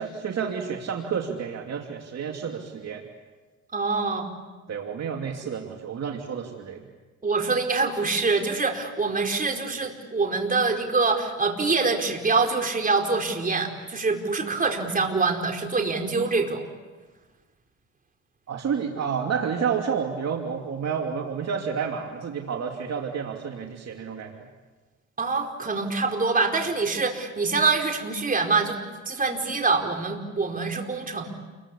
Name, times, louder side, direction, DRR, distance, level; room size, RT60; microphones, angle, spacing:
voice 1, 0.0-3.0 4.7-6.8 18.5-24.4, right 6 dB, 60° right, 2 dB, 2.8 m, -30 dB
voice 2, 3.7-4.3 7.2-16.6 25.2-28.8 29.1-31.3, right 4 dB, 30° right, 2 dB, 4.8 m, -25 dB
29.5 x 23.0 x 8.5 m, 1.3 s
cardioid pair, 90°, 30 cm